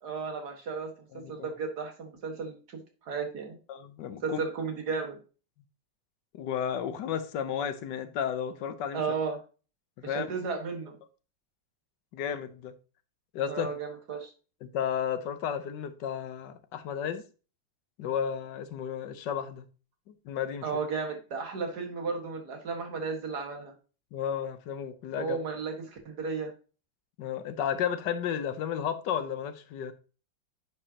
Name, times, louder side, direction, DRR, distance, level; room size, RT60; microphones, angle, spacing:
voice 1, 0.0-3.6 4.2-5.2 8.9-9.4 10.0-11.0 13.5-14.3 20.6-23.7 25.2-26.5, right 5 dB, 55° right, 2.1 m, -34 dB
voice 2, 1.1-1.5 3.7-4.4 6.3-9.0 10.0-10.3 12.1-12.7 13.3-13.7 14.6-17.2 18.0-19.7 20.2-20.7 24.1-25.4 27.2-29.9, left 8 dB, 70° left, 1.4 m, -33 dB
9.9 x 5.1 x 2.8 m
omnidirectional pair, 2.1 m